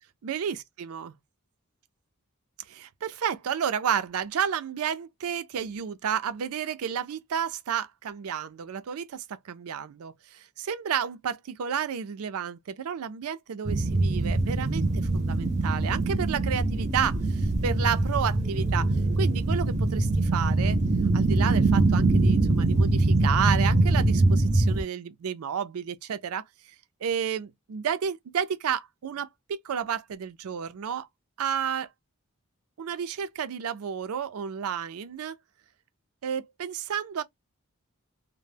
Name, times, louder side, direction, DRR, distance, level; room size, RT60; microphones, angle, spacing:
voice 1, 0.2-1.1 2.7-18.9 19.2-20.8 21.1-26.7 27.0-31.1 31.4-31.9 32.8-35.4 36.2-37.2, right 8 dB, 85° right, 0.4 m, -31 dB
sound 1, 13.6-24.8, right 2 dB, 30° right, 0.4 m, -23 dB
2.1 x 2.0 x 3.2 m
head